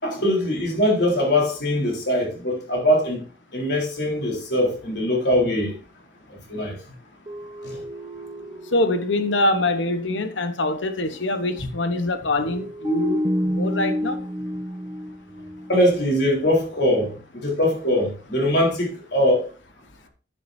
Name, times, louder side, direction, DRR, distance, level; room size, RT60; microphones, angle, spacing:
voice 1, 0.0-3.2 3.5-5.8 6.5-6.8 7.6-7.8 15.7-19.5, left 1 dB, 65° left, 4.1 m, -22 dB
sound 1, 7.3-9.8 10.1-10.2 12.5-16.1, equal, 25° right, 1.0 m, -29 dB
voice 2, 8.7-14.2, left 2 dB, 90° left, 1.1 m, -24 dB
10.5 x 10.0 x 2.7 m
head